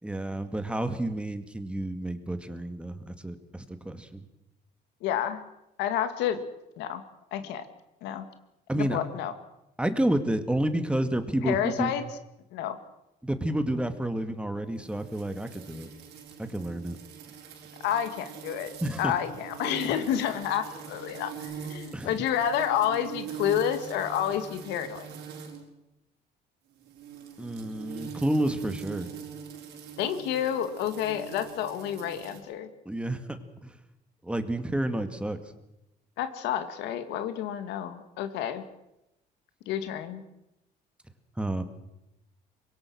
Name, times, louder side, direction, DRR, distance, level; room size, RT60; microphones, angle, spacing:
voice 1, 0.0-4.2 8.7-9.0 9.8-11.9 13.2-15.9 16.4-17.0 18.8-19.1 21.9-22.2 27.4-29.1 32.9-33.8 34.2-35.5 41.4-41.6, right 1 dB, 5° right, 9 dB, 2.2 m, -30 dB
voice 2, 5.0-5.4 5.8-6.4 6.8-7.0 7.3-7.6 8.0-8.3 8.8-9.3 11.4-12.0 12.5-12.8 17.8-18.7 19.0-25.1 30.0-32.7 36.2-38.6 39.7-40.2, left 9 dB, 90° left, 9 dB, 2.2 m, -29 dB
sound 1, 14.8-25.7 26.7-32.4, right 8 dB, 80° right, 5.4 m, -43 dB
25.0 x 22.5 x 6.4 m, 0.89 s
cardioid pair, 110°, 17 cm